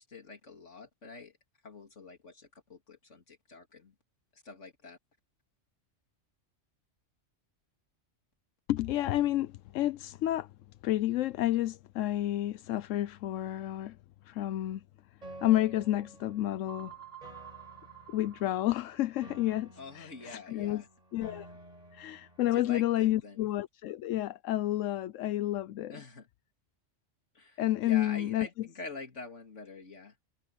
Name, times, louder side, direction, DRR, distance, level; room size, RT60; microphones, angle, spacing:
voice 1, 0.0-1.4 1.6-3.9 4.3-5.0 19.8-20.9 22.4-23.5 25.9-26.3 27.3-30.2, left 3 dB, 70° left, 3.3 m, -46 dB
voice 2, 8.7-10.5 10.8-14.0 14.2-14.8 15.4-16.9 18.1-20.8 21.1-21.5 21.9-25.9 27.6-28.5, left 14 dB, 90° left, 1.0 m, -30 dB
Piano, 15.2-23.2, right 1 dB, 30° right, 4.5 m, -53 dB
sound 1, 16.7-19.3, right 9 dB, 50° left, 5.4 m, -50 dB
omnidirectional pair, 1.3 m